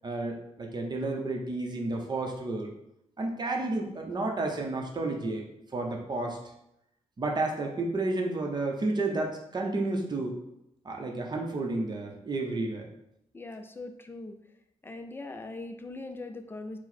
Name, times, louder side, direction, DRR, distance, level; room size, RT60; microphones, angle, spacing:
voice 1, 0.0-2.7 3.2-5.5 5.7-6.4 7.2-10.4 10.8-12.9, right 2 dB, 35° right, 1 dB, 0.7 m, -31 dB
voice 2, 13.3-14.4 14.8-16.8, left 2 dB, 20° left, 6 dB, 0.4 m, -41 dB
4.5 x 2.1 x 4.1 m, 0.80 s
cardioid pair, 95°, 12 cm